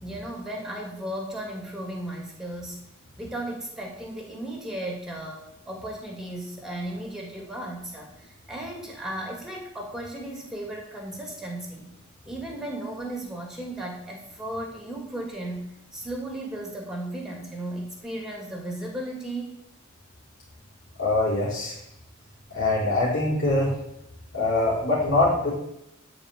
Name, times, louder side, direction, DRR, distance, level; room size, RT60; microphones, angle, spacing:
voice 1, 0.0-2.8 3.2-11.9 12.2-19.6, right 1 dB, ahead, 0 dB, 2.9 m, -35 dB
voice 2, 21.0-21.8 22.5-23.7 24.3-25.5, left 2 dB, 55° left, -9 dB, 4.6 m, -23 dB
12.5 x 5.1 x 8.6 m, 0.80 s
head